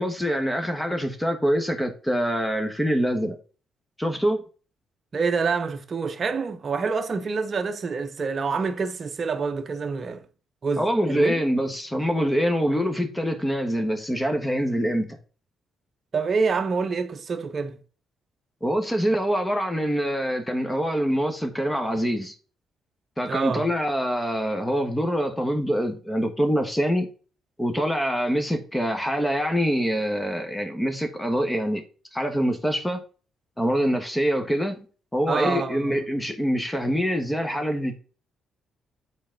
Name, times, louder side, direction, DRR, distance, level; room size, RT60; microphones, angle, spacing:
voice 1, 0.0-3.4 4.0-4.4 10.8-15.2 18.6-22.3 23.2-27.1 27.6-31.8 32.1-33.0 33.6-34.9 35.1-38.0, equal, 10° left, 1.4 m, -25 dB
voice 2, 5.1-10.2 10.6-11.4 16.1-17.8 23.3-23.7 35.3-36.0, right 5 dB, 40° right, 0.8 m, -27 dB
8.5 x 4.1 x 3.9 m
cardioid pair, 90°, 0 cm